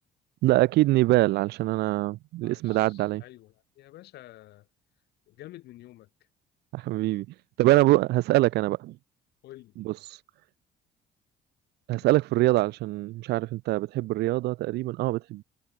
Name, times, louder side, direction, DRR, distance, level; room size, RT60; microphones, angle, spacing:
voice 1, 0.4-3.2 6.7-7.3 7.6-9.0 9.8-9.9 11.9-15.4, right 18 dB, 80° right, 0.9 m, -24 dB
voice 2, 2.4-4.7 5.3-6.1 9.4-9.7, left 16 dB, 80° left, 7.3 m, -49 dB
cardioid pair, 110°, 17 cm